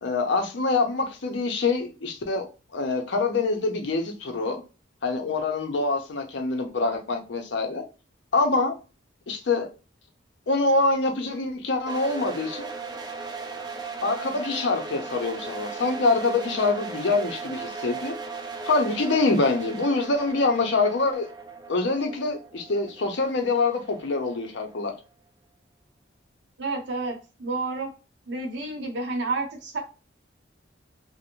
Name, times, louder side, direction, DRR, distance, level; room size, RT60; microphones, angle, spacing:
voice 1, 0.0-2.5 2.7-4.6 5.0-7.8 8.3-8.7 9.3-9.7 10.5-12.7 14.0-18.2 18.6-21.3 21.7-24.9, left 3 dB, 65° left, 0.6 m, -25 dB
sound 1, 11.9-24.7, right 4 dB, 20° right, 0.4 m, -37 dB
voice 2, 26.6-27.9 28.3-29.8, right 3 dB, 65° right, 0.8 m, -30 dB
2.5 x 2.1 x 2.9 m
head